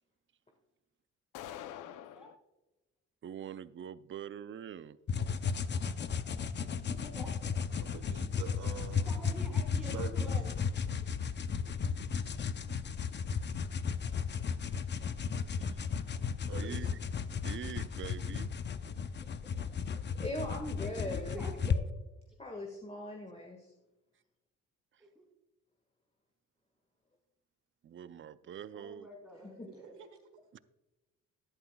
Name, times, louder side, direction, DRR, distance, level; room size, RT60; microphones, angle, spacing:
sound 1, 1.3-2.4, left 11 dB, 90° left, 0.7 m, -45 dB
voice 1, 3.2-5.0 15.7-15.9 16.6-16.9 17.3-18.5 27.8-29.1 30.5-30.6, right 9 dB, 40° right, 0.5 m, -44 dB
sound 2, 5.1-21.8, left 6 dB, 35° left, 0.6 m, -34 dB
voice 2, 6.9-7.5 9.0-10.5 11.0-11.1 19.4-20.2 20.5-21.8 25.0-25.3 28.7-29.9, right 1 dB, ahead, 2.9 m, -48 dB
voice 3, 7.7-9.1 9.9-10.3 16.5-16.9 29.9-30.2, right 7 dB, 75° right, 1.4 m, -45 dB
voice 4, 20.2-21.4 22.4-23.7 29.4-29.7, left 1 dB, 20° left, 1.7 m, -40 dB
13.0 x 11.0 x 2.3 m
cardioid pair, 90°, 30 cm